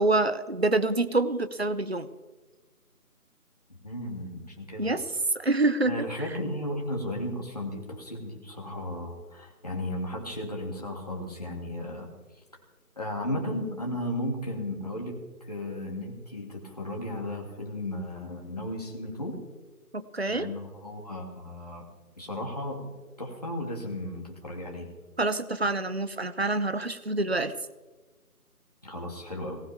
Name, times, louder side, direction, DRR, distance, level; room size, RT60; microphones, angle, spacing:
voice 1, 0.0-2.1 4.8-5.0 5.3-6.3 19.9-20.5 25.2-27.5, right 2 dB, 45° right, 13 dB, 0.7 m, -26 dB
voice 2, 3.8-4.9 5.9-12.1 13.0-19.4 20.3-21.8 22.2-22.8 23.2-24.9 28.8-29.6, left 1 dB, 25° left, -1 dB, 2.3 m, -35 dB
19.0 x 18.0 x 3.5 m, 1.3 s
figure-of-eight pair, 170°, 45 cm